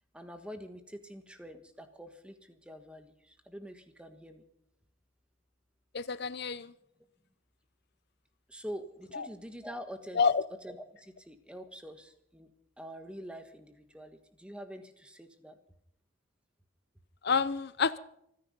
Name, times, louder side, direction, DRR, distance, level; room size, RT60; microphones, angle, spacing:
voice 1, 0.1-4.5 8.5-10.3 10.6-12.5 12.8-15.6, equal, 5° right, 8 dB, 1.4 m, -46 dB
voice 2, 5.9-6.7 10.2-10.4 17.2-18.0, left 5 dB, 50° left, 17 dB, 0.6 m, -28 dB
26.0 x 10.5 x 5.4 m, 0.73 s
head